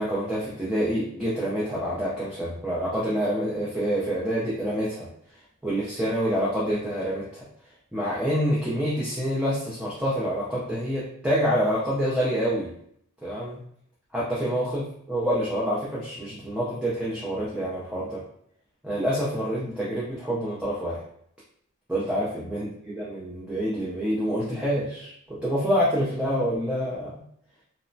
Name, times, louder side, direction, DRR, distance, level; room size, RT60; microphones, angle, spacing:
voice 1, 0.0-5.1 5.6-7.4 7.9-12.7 13.2-13.6 14.1-18.2 18.8-21.0 21.9-27.1, equal, 5° right, -7 dB, 0.4 m, -27 dB
3.0 x 2.0 x 2.5 m, 0.69 s
head